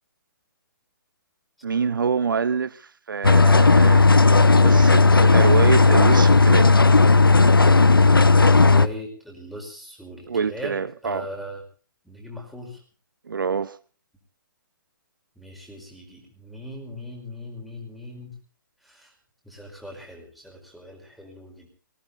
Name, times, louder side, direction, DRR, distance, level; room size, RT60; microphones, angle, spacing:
voice 1, 1.6-6.7 10.3-11.3 13.3-13.8, right 6 dB, 70° right, 0.8 m, -26 dB
sound 1, 3.2-8.9, left 3 dB, 90° left, 0.8 m, -14 dB
voice 2, 8.6-11.6 12.0-12.8 15.4-18.3 18.8-19.1 19.4-21.7, left 1 dB, ahead, 5.0 m, -39 dB
19.0 x 18.0 x 4.1 m
figure-of-eight pair, 135°, 11 cm